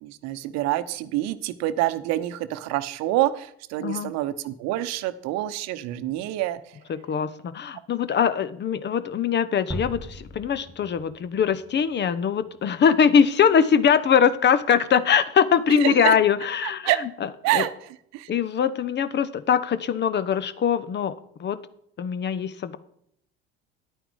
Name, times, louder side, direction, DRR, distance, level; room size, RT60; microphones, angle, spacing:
voice 1, 0.0-6.6 15.7-16.2 16.8-17.0 17.4-18.3, right 15 dB, 60° right, 13 dB, 0.8 m, -27 dB
voice 2, 3.8-4.1 6.9-16.9 17.5-17.7 18.3-21.1 21.4-21.6 22.0-22.8, left 7 dB, 35° left, 16 dB, 0.8 m, -22 dB
sound 1, 9.7-12.6, equal, ahead, 2.5 m, -39 dB
10.0 x 9.0 x 4.7 m, 0.70 s
hypercardioid pair, 65°, 29 cm